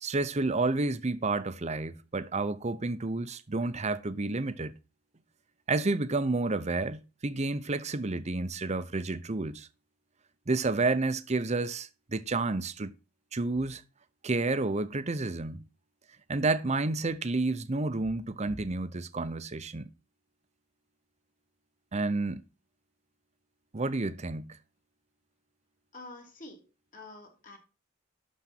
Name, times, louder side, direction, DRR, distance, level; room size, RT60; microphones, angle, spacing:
voice 1, 0.0-4.7 5.7-9.7 10.5-12.9 13.3-13.8 14.2-15.6 16.3-19.9 21.9-22.4 23.7-24.6, right 3 dB, 35° right, 0.7 m, -30 dB
voice 2, 25.9-26.6 26.9-27.6, left 2 dB, 45° left, 2.9 m, -47 dB
12.0 x 4.1 x 5.9 m
head